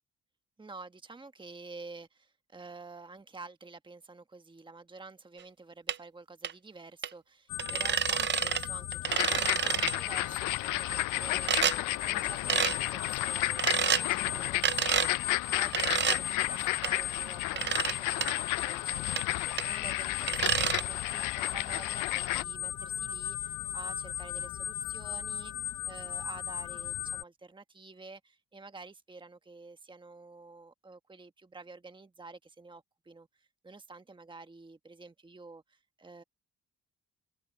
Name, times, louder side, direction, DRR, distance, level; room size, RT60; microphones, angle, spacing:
voice 1, 0.6-16.2 16.5-36.2, right 3 dB, 15° right, 1.4 m, -50 dB
sound 1, 5.9-6.0 6.4-6.5 7.0-7.1 7.6-8.7 8.9-10.0 11.5-11.8 12.5-12.8 13.6-14.0 14.6-15.1 15.7-16.2 16.8-16.9 17.6-17.9 18.2-18.3 19.2-19.3 19.6-19.7 20.3-20.8, right 8 dB, 40° right, 0.6 m, -28 dB
sound 2, 7.5-27.2, left 9 dB, 70° left, 0.9 m, -37 dB
sound 3, 9.1-22.4, left 18 dB, 85° left, 0.5 m, -33 dB
cardioid pair, 90°, 30 cm